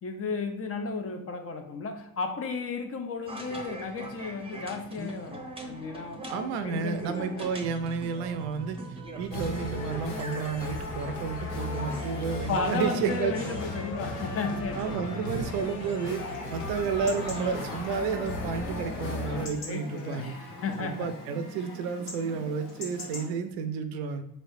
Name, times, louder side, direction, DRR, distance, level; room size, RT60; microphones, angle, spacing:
voice 1, 0.0-7.6 12.5-15.2 15.5-15.6 19.3-21.1, left 4 dB, 30° left, 5 dB, 0.6 m, -34 dB
sound 1, 3.3-18.1, right 2 dB, 10° right, 0.7 m, -42 dB
voice 2, 6.3-13.3 14.7-20.3 20.8-24.2, right 6 dB, 65° right, 9 dB, 0.5 m, -31 dB
sound 2, 9.3-19.5, left 2 dB, 85° left, 0.6 m, -36 dB
Chatter / Livestock farm animals working animals / Chirp tweet, 16.1-23.3, left 2 dB, 55° left, 1.3 m, -42 dB
3.9 x 3.1 x 2.6 m, 0.78 s
figure-of-eight pair, 40°, 47 cm